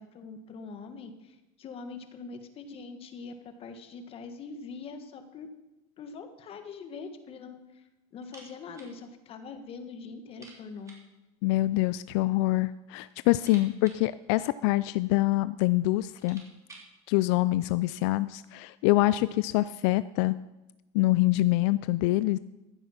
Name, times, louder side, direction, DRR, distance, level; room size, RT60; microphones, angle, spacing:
voice 1, 0.0-5.5 6.0-10.9, left 4 dB, 40° left, 8 dB, 1.5 m, -43 dB
sound 1, 8.2-9.0 9.2-9.3 9.7-9.8 10.3-11.1 12.1-12.7 13.0-15.0 15.7-15.8 16.0-17.0, right 3 dB, 20° right, 3.5 m, -53 dB
voice 2, 11.4-16.4 17.1-20.3 20.9-22.4, left 18 dB, 70° left, 16 dB, 0.4 m, -25 dB
14.5 x 7.8 x 5.8 m, 1.0 s
supercardioid pair, 125°, 15 cm